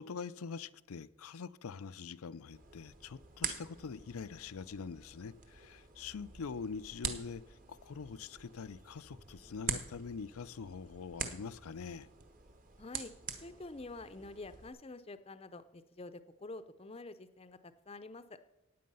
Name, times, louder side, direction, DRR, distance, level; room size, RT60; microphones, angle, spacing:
voice 1, 0.0-12.1, left 5 dB, 80° left, 0.5 m, -44 dB
sound 1, 2.5-14.7, right 6 dB, 40° right, 1.1 m, -45 dB
voice 2, 12.8-13.1 13.4-18.4, left 2 dB, 25° left, 0.6 m, -48 dB
15.5 x 9.3 x 5.5 m
head